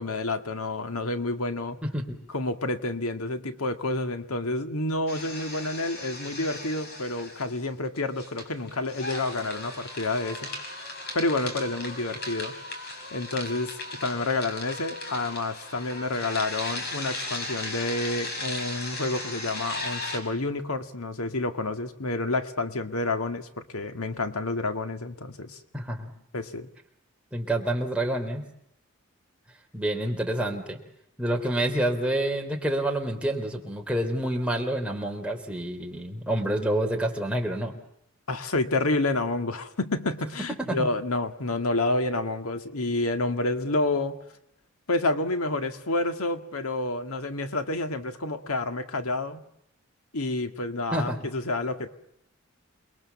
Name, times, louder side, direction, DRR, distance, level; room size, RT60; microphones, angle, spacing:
voice 1, 0.0-1.8 2.3-10.5 11.1-12.5 13.1-25.6 26.3-26.7 38.3-44.2 44.9-49.4 50.1-51.9, left 2 dB, 90° left, 7 dB, 1.9 m, -29 dB
sound 1, 5.1-7.7 8.0-20.2, left 2 dB, 50° left, 5.5 m, -37 dB
voice 2, 25.7-26.1 27.3-28.4 29.7-30.8 31.2-37.7 40.6-40.9 50.9-51.2, right 1 dB, 5° right, 1 dB, 3.5 m, -28 dB
28.5 x 22.0 x 7.1 m, 0.75 s
head